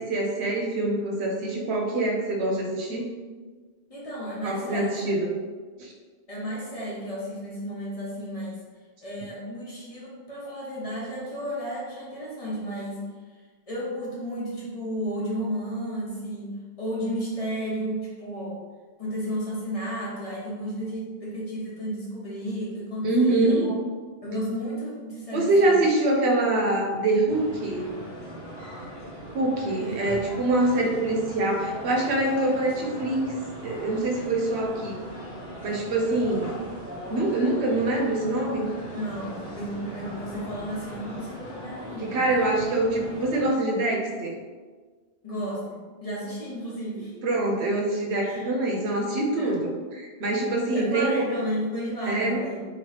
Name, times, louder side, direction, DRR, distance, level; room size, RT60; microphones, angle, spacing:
voice 1, 0.0-3.1 4.4-5.3 5.8-5.9 23.0-23.7 25.3-27.9 29.3-33.2 33.6-35.0 35.6-36.6 37.1-38.7 42.1-44.3 47.2-51.3 52.1-52.4, right 2 dB, 90° right, 0 dB, 0.9 m, -24 dB
voice 2, 3.9-5.2 6.3-8.6 9.0-13.0 13.3-13.4 13.7-18.6 19.0-23.7 24.2-25.7 29.8-30.2 38.9-42.2 45.2-47.1 48.2-48.6 49.4-49.8 50.7-52.6, equal, 35° left, -6 dB, 0.9 m, -33 dB
sound 1, 27.3-43.5, equal, 15° right, 1.2 m, -39 dB
2.8 x 2.8 x 3.2 m, 1.4 s
omnidirectional pair, 1.1 m